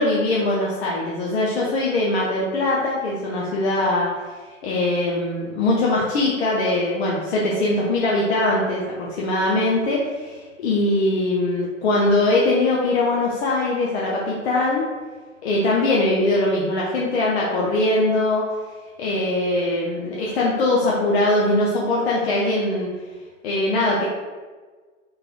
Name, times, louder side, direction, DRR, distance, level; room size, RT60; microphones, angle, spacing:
voice 1, 0.0-4.1 4.6-14.8 15.4-18.4 19.0-22.9 23.4-24.0, left 2 dB, 55° left, -4 dB, 0.8 m, -21 dB
3.6 x 3.3 x 2.5 m, 1.4 s
figure-of-eight pair, 100°, 39 cm